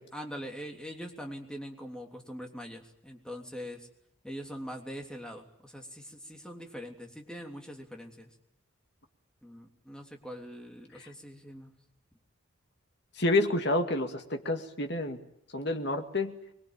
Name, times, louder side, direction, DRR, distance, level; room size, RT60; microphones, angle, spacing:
voice 1, 0.1-3.9 4.2-8.3 9.4-11.7, equal, 5° left, 2 dB, 3.2 m, -43 dB
voice 2, 13.2-15.2 15.5-16.3, left 2 dB, 55° left, 5 dB, 2.3 m, -29 dB
24.5 x 23.0 x 9.0 m, 0.78 s
head